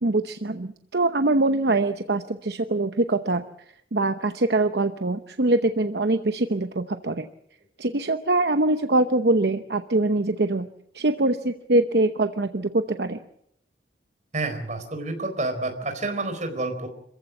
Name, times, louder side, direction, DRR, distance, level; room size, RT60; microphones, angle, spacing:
voice 1, 0.0-3.4 3.9-7.3 7.8-10.7 10.9-13.2, right 2 dB, 65° right, 8 dB, 0.9 m, -23 dB
voice 2, 14.3-16.9, right 2 dB, 40° right, 5 dB, 4.3 m, -29 dB
26.5 x 15.0 x 8.3 m, 0.76 s
head